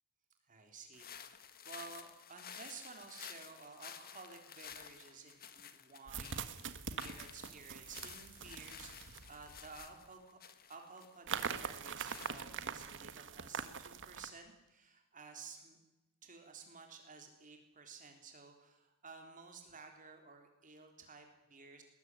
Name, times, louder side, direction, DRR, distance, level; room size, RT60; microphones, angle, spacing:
voice 1, 0.5-10.4 10.7-15.8 16.2-21.8, right 4 dB, 35° right, 4 dB, 3.4 m, -54 dB
sound 1, 0.9-12.9, left 8 dB, 45° left, 1.7 m, -53 dB
sound 2, 4.7-4.8 6.1-9.9 11.3-14.3, right 6 dB, 60° right, 1.7 m, -43 dB
21.5 x 20.5 x 9.5 m, 0.96 s
head